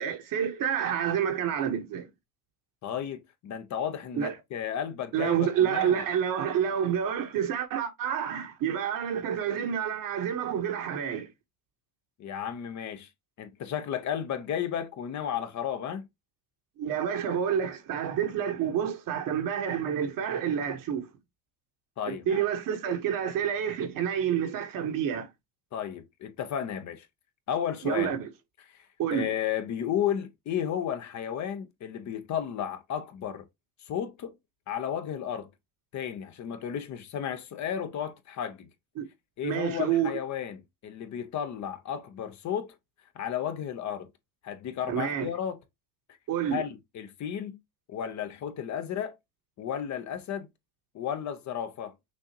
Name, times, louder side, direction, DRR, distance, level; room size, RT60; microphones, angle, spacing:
voice 1, 0.0-2.1 4.1-4.3 5.1-11.3 16.8-21.1 22.1-25.3 27.8-28.3 29.0-29.3 39.0-39.1 39.4-40.1 44.9-45.3 46.3-46.6, right 9 dB, 45° right, 1.1 m, -28 dB
voice 2, 2.8-6.0 12.2-13.1 13.4-16.1 22.0-22.4 25.7-27.1 27.5-28.1 28.7-28.8 29.1-33.5 33.8-34.3 34.7-35.5 35.9-38.7 39.4-42.8 43.1-44.1 44.4-45.6 46.5-47.6 47.9-49.2 49.6-50.5 50.9-51.9, left 9 dB, 40° left, 0.8 m, -33 dB
6.2 x 2.6 x 2.8 m
supercardioid pair, 95°, 45 cm